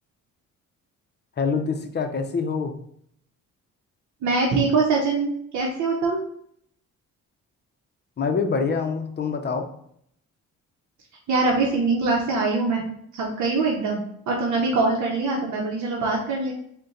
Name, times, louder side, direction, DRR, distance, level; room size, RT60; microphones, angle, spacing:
voice 1, 1.4-2.7 8.2-9.7, left 5 dB, 35° left, 6 dB, 0.6 m, -25 dB
voice 2, 4.2-6.2 11.3-12.8 13.1-16.5, right 3 dB, 70° right, -1 dB, 0.8 m, -23 dB
3.9 x 2.2 x 3.7 m, 0.68 s
cardioid pair, 90°, 30 cm